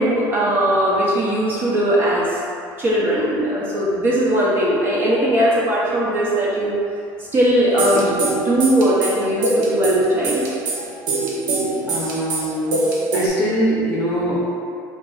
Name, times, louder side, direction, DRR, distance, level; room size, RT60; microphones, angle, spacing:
voice 1, 0.0-2.4 2.8-6.8 7.3-10.5, right 1 dB, 25° right, -6 dB, 0.5 m, -19 dB
sound 1, 7.8-13.3, right 2 dB, 70° right, 0.9 m, -22 dB
voice 2, 11.8-12.9 13.1-14.4, equal, 10° left, -9 dB, 0.7 m, -23 dB
4.0 x 2.3 x 3.7 m, 2.5 s
cardioid pair, 160°, 8 cm